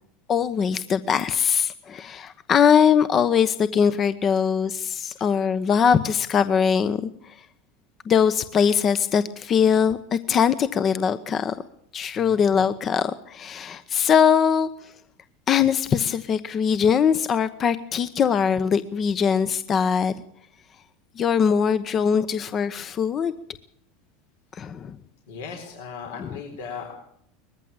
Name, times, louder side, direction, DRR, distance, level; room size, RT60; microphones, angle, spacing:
voice 1, 0.3-7.4 8.1-11.5 11.9-14.9 15.5-20.1 21.2-23.3 24.5-25.0 26.2-26.3, left 7 dB, 35° left, 13 dB, 0.9 m, -21 dB
voice 2, 25.3-26.9, left 6 dB, 75° left, 2 dB, 4.2 m, -37 dB
20.5 x 15.0 x 8.9 m, 0.69 s
hypercardioid pair, 95°, 0 cm